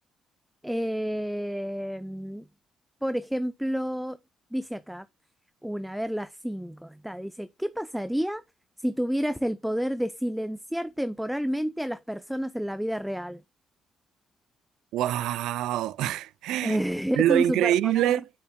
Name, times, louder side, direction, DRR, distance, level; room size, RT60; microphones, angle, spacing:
voice 1, 0.6-2.4 3.0-4.2 4.5-5.1 5.6-8.4 8.8-13.4 16.6-18.1, equal, 5° right, 0.4 m, -30 dB
voice 2, 14.9-16.8 17.2-18.3, right 12 dB, 90° right, 0.3 m, -25 dB
8.6 x 7.1 x 2.2 m
cardioid pair, 90°, 0 cm